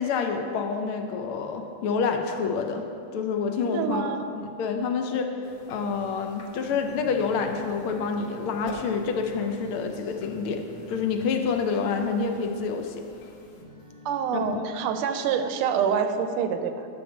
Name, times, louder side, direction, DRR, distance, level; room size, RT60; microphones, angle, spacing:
voice 1, 0.0-2.8 3.1-4.1 4.3-5.3 5.7-10.6 10.9-13.0 14.3-14.6, left 5 dB, 80° left, 5 dB, 1.6 m, -28 dB
voice 2, 3.7-4.3 14.0-16.9, right 7 dB, 85° right, 8 dB, 1.5 m, -26 dB
sound 1, 5.4-13.6, left 3 dB, 60° left, 1.3 m, -47 dB
sound 2, 6.7-15.1, left 3 dB, 30° left, 1.1 m, -47 dB
9.7 x 3.7 x 7.1 m, 2.5 s
omnidirectional pair, 2.3 m